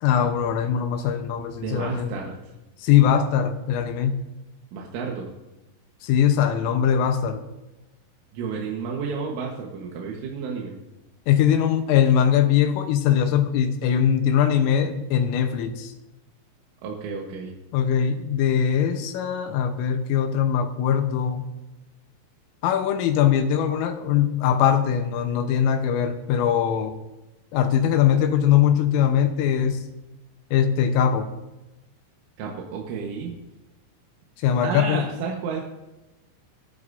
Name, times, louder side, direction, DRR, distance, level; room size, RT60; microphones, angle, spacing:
voice 1, 0.0-2.2 2.8-4.2 6.0-7.4 11.3-15.9 17.7-21.4 22.6-27.0 27.5-29.9 30.5-31.3 34.4-35.1, left 9 dB, 85° left, 6 dB, 3.6 m, -21 dB
voice 2, 1.6-2.4 4.7-5.3 8.3-10.8 16.8-17.5 32.4-33.4 34.6-35.6, right 5 dB, 75° right, -1 dB, 3.8 m, -31 dB
22.5 x 13.0 x 2.7 m, 1.0 s
omnidirectional pair, 5.8 m